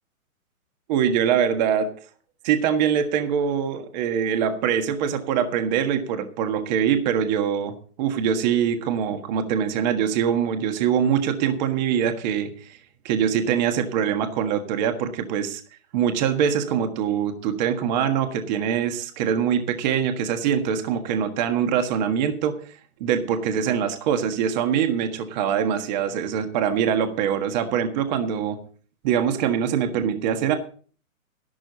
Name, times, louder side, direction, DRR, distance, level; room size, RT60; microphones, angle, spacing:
voice 1, 0.9-1.9 2.4-12.8 13.0-15.6 15.9-22.6 23.0-28.6 29.0-30.5, right 8 dB, 30° right, 7 dB, 1.6 m, -23 dB
12.5 x 12.0 x 4.1 m, 0.42 s
hypercardioid pair, 155°, 43 cm